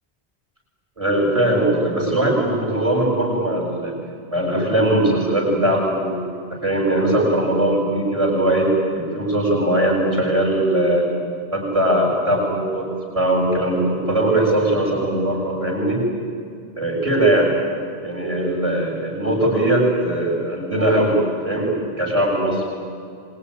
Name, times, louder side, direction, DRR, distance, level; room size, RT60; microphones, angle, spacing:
voice 1, 1.0-3.9 4.3-11.1 11.5-12.9 13.2-16.0 16.8-17.5 18.0-22.6, right 1 dB, 30° right, -1 dB, 7.4 m, -20 dB
25.5 x 21.5 x 10.0 m, 2.4 s
omnidirectional pair, 1.1 m